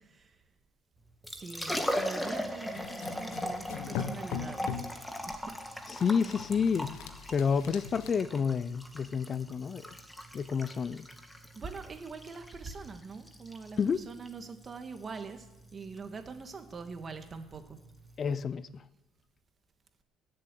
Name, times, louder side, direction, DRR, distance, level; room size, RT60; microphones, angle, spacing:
Liquid, 1.1-18.4, equal, 5° left, 1.5 m, -40 dB
voice 1, 1.4-4.7 5.3-5.4 11.5-13.8 14.1-15.4 15.7-17.6, right 4 dB, 30° right, 1.7 m, -43 dB
sound 1, 2.7-5.0 6.0-8.1, left 8 dB, 90° left, 1.1 m, -40 dB
voice 2, 5.9-6.9 7.3-9.9 10.3-11.1 13.8-14.1 18.2-18.8, left 6 dB, 35° left, 0.5 m, -29 dB
15.0 x 7.7 x 9.3 m
cardioid pair, 120°, 0 cm